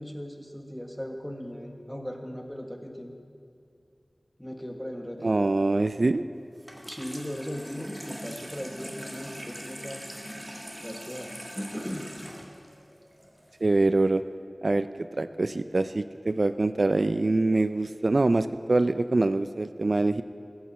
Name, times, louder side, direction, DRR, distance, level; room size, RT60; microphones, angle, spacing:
voice 1, 0.0-3.1 4.4-5.5 6.9-10.0 10.8-12.3, equal, 10° left, 3 dB, 1.4 m, -38 dB
voice 2, 5.2-6.2 13.6-14.2 14.6-14.9 15.2-20.2, right 2 dB, 70° right, 12 dB, 0.3 m, -24 dB
Water tap faucet / Sink (filling or washing), 6.6-13.6, equal, 15° right, 1.8 m, -42 dB
14.5 x 7.2 x 7.4 m, 2.5 s
wide cardioid pair, 50°, 0 cm